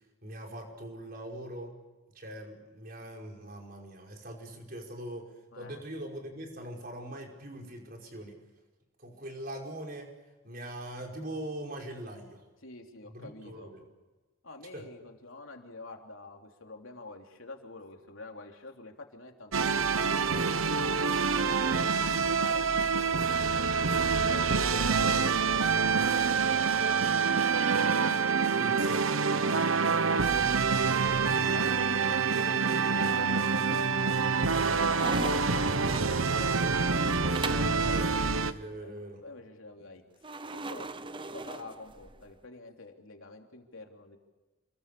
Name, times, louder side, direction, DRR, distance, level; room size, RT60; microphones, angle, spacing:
voice 1, 0.2-1.7 2.1-8.4 9.0-10.1 10.4-12.4 13.0-13.9 14.7-14.9 28.5-29.0 37.4-39.2, right 1 dB, 45° right, 1 dB, 5.3 m, -42 dB
voice 2, 5.5-5.8 12.6-13.7 14.4-20.9 21.3-23.7 24.2-29.0 31.1-34.2 34.4-36.9 38.8-38.9 39.2-40.0 40.5-40.9 41.3-44.2, left 3 dB, 75° left, 2 dB, 3.4 m, -48 dB
sound 1, 19.5-38.5, right 5 dB, 75° right, 1.1 m, -26 dB
sound 2, 33.1-33.7 34.1-37.8 40.2-42.3, right 3 dB, 25° right, 0.7 m, -40 dB
29.0 x 22.0 x 7.0 m, 1.2 s
head